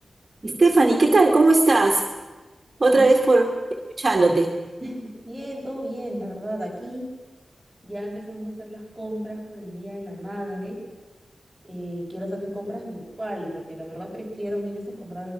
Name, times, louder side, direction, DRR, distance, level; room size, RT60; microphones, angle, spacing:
voice 1, 0.4-2.0 2.8-3.6 4.0-4.5, right 2 dB, 35° right, 1 dB, 2.4 m, -17 dB
voice 2, 4.8-7.1 7.8-10.8 11.6-15.3, equal, 10° right, -3 dB, 6.8 m, -33 dB
23.5 x 22.0 x 6.2 m, 1.3 s
wide cardioid pair, 115°, 0 cm